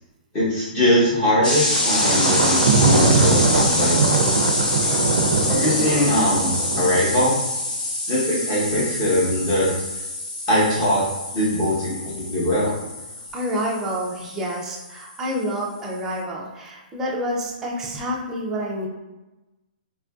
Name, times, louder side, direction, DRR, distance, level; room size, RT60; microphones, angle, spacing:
voice 1, 0.3-4.3 5.5-7.3 8.1-9.7 10.5-11.0 11.3-12.7, left 1 dB, 20° left, -7 dB, 0.9 m, -21 dB
sound 1, 1.4-15.0, left 2 dB, 60° left, 1.0 m, -26 dB
Thunder, 1.7-7.0, right 4 dB, 80° right, 0.4 m, -21 dB
voice 2, 13.3-18.9, equal, 10° right, -3 dB, 0.3 m, -28 dB
4.2 x 2.5 x 2.3 m, 1.1 s
hypercardioid pair, 175°, 5 cm